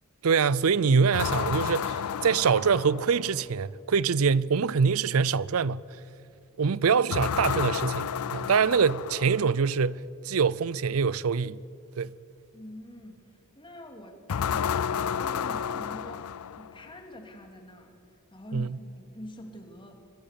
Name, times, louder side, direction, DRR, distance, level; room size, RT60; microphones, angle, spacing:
voice 1, 0.2-5.8 6.6-11.6 12.0-12.1 18.5-18.7, right 5 dB, 75° right, 0.5 m, -24 dB
sound 1, 1.1-3.5 7.1-9.6 14.3-16.9, left 8 dB, 85° left, 0.4 m, -31 dB
voice 2, 12.5-20.0, equal, 25° left, 2.8 m, -45 dB
25.0 x 22.0 x 6.9 m
head